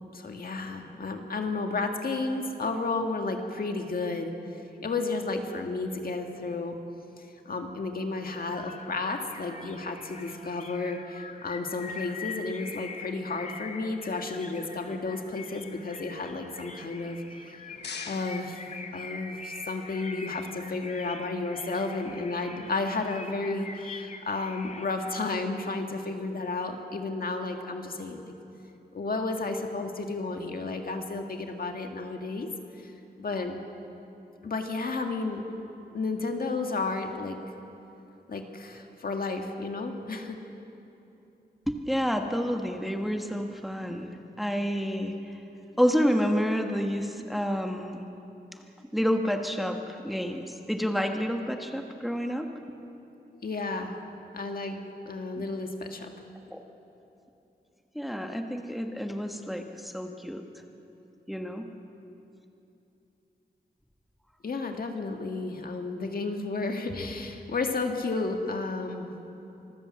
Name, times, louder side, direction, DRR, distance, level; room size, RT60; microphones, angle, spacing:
voice 1, 0.1-4.3 4.8-6.8 7.5-17.2 18.1-18.6 18.9-28.3 28.9-32.5 32.8-33.6 34.4-35.6 35.9-37.4 38.3-40.4 53.4-54.0 54.3-54.8 55.1-56.1 64.4-69.1, left 3 dB, 60° left, 4 dB, 1.8 m, -32 dB
sound 1, 8.5-25.3, left 4 dB, 40° left, 1.2 m, -44 dB
sound 2, 17.3-19.5, left 5 dB, 80° left, 1.1 m, -44 dB
voice 2, 41.7-44.1 44.4-45.4 45.8-48.0 48.9-52.5 55.3-55.4 56.5-56.6 57.9-60.4 61.3-61.7, equal, ahead, 4 dB, 1.3 m, -29 dB
25.5 x 14.0 x 7.5 m, 2.9 s
wide cardioid pair, 115°, 17 cm